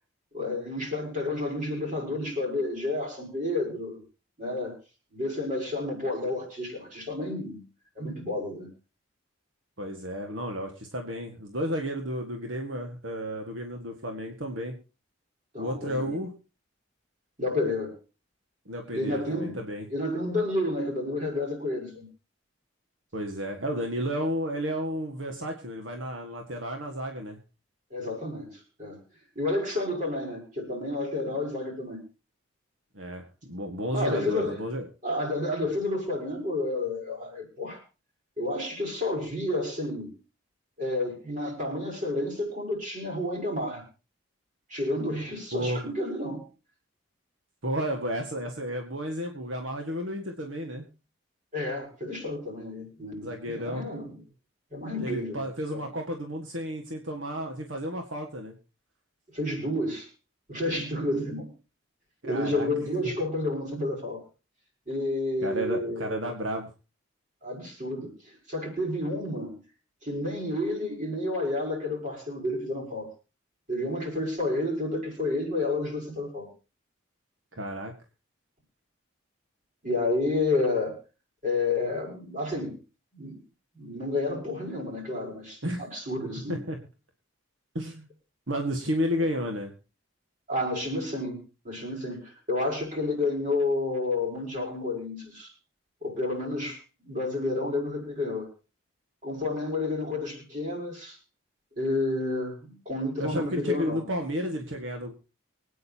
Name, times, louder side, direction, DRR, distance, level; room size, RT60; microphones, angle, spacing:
voice 1, 0.3-4.0 4.4-4.8 5.1-7.6 8.0-8.7 15.5-16.2 17.4-18.0 18.9-19.6 19.9-22.1 27.9-29.0 29.3-32.0 33.9-34.6 35.0-37.8 38.4-40.2 40.8-43.8 44.7-46.4 51.5-54.2 54.7-55.8 59.3-60.1 60.5-61.5 62.2-64.2 64.9-66.2 67.4-69.6 70.0-73.1 73.7-76.5 79.8-81.0 81.4-82.8 83.1-83.4 83.7-86.6 90.5-95.5 96.0-98.5 99.2-101.2 101.8-104.0, left 2 dB, 40° right, 1 dB, 5.9 m, -30 dB
voice 2, 9.8-14.7 15.6-16.3 18.7-19.9 23.1-27.4 32.9-34.9 45.5-45.8 47.6-50.9 53.2-53.8 55.0-58.6 62.2-62.7 65.4-66.7 77.5-77.9 85.6-85.8 86.5-86.8 87.8-88.1 88.5-89.7 103.2-105.1, equal, 70° right, 3 dB, 1.8 m, -32 dB
24.5 x 9.3 x 2.9 m, 0.33 s
head